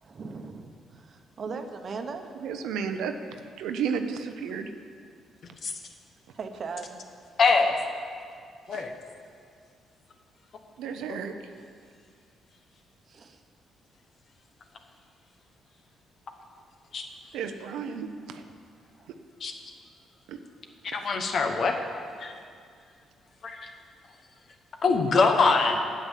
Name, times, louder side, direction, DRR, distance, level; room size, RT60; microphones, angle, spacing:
voice 1, 0.0-2.4 6.3-7.0 13.1-13.4 19.0-19.1, right 4 dB, 45° right, 6 dB, 1.1 m, -38 dB
voice 2, 2.4-3.1 3.6-4.7 8.7-8.9 10.8-11.3 17.3-18.4 20.3-20.4 21.0-21.1, right 6 dB, 90° right, 7 dB, 0.8 m, -32 dB
voice 3, 7.4-7.8 8.7-8.9 11.1-11.2 16.9-17.0 19.4-19.5 20.8-21.7 22.2-22.3 23.4-23.7 24.8-25.8, left 4 dB, 55° left, 5 dB, 1.3 m, -23 dB
9.0 x 8.8 x 7.4 m, 2.2 s
cardioid pair, 90°, 0 cm